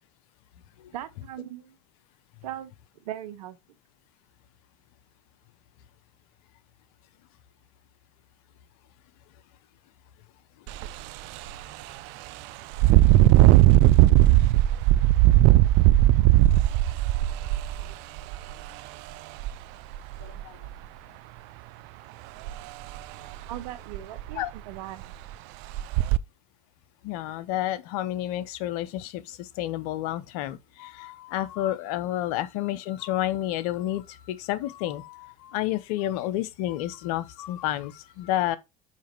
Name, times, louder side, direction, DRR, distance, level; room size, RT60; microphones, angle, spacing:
voice 1, 0.9-1.7 2.4-2.7 3.0-3.6 23.5-25.1, right 12 dB, 85° right, 0.8 m, -38 dB
Engine, 10.7-10.9 11.4-11.5 12.7-18.5 19.4-19.5 19.9-20.7 22.5-22.6 23.0-23.1 23.5-23.6 23.9-24.4 25.0-25.1 25.7-26.2, right 16 dB, 70° right, 0.5 m, -18 dB
voice 2, 20.2-20.6 24.3-24.5 27.0-38.6, left 13 dB, 80° left, 0.8 m, -30 dB
5.6 x 5.0 x 4.5 m
hypercardioid pair, 80°, 19 cm